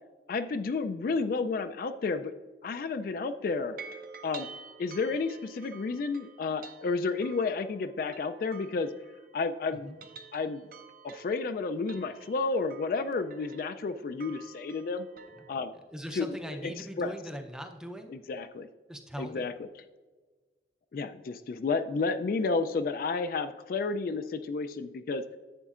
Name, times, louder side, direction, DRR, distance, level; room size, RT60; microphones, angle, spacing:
voice 1, 0.3-2.3 2.6-3.8 4.2-4.5 4.8-8.9 9.3-9.9 10.3-10.7 11.0-15.1 15.5-15.7 16.1-16.3 16.6-17.1 18.1-18.7 19.2-19.7 20.9-25.2, left 4 dB, 50° left, 9 dB, 0.3 m, -31 dB
sound 1, 3.5-9.5 9.8-15.6, right 5 dB, 50° right, 0.6 m, -50 dB
voice 2, 15.9-18.2 18.9-19.5, equal, 5° right, 4 dB, 0.5 m, -40 dB
11.0 x 7.9 x 2.4 m, 1.4 s
head